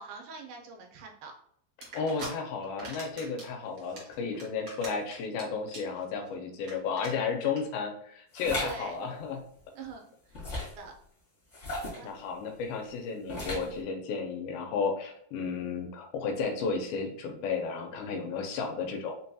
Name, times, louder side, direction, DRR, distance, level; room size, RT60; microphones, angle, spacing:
voice 1, 0.0-1.3 8.6-8.9 9.7-10.0 10.3-10.9 11.9-12.1, right 4 dB, 85° right, 2 dB, 2.7 m, -44 dB
sound 1, 1.8-2.3 2.6-3.5 3.8-5.4 5.7-6.0 6.3-6.4 6.6-6.7 7.0-7.1 7.4-7.6, right 2 dB, 65° right, 0.9 m, -42 dB
voice 2, 1.9-9.4 12.0-19.1, left 5 dB, 85° left, 4 dB, 2.3 m, -33 dB
sound 2, 8.3-8.8 10.3-10.8 11.5-12.1 13.3-13.8, left 2 dB, 60° left, 0.7 m, -35 dB
5.8 x 2.2 x 2.7 m, 0.67 s
omnidirectional pair, 4.2 m